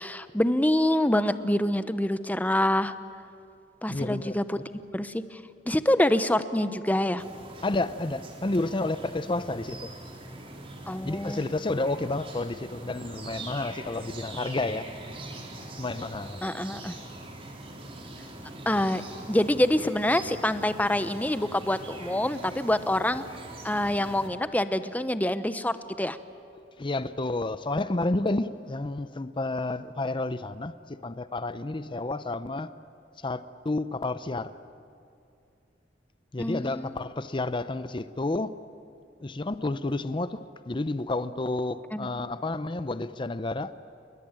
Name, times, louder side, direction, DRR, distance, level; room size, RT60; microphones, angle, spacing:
voice 1, 0.0-2.9 3.8-4.6 4.9-5.1 5.7-7.2 10.9-11.4 16.4-16.9 18.7-19.0 19.3-23.3 23.6-26.2 36.4-36.9 41.9-42.1, left 1 dB, 10° left, 0.9 m, -26 dB
voice 2, 3.9-4.4 7.6-9.9 11.0-14.9 15.8-16.4 26.5-32.7 33.2-34.5 36.3-38.5 39.2-43.7, left 2 dB, 30° left, 0.6 m, -30 dB
sound 1, 7.2-24.3, right 2 dB, 30° right, 3.6 m, -43 dB
29.0 x 21.5 x 9.0 m
head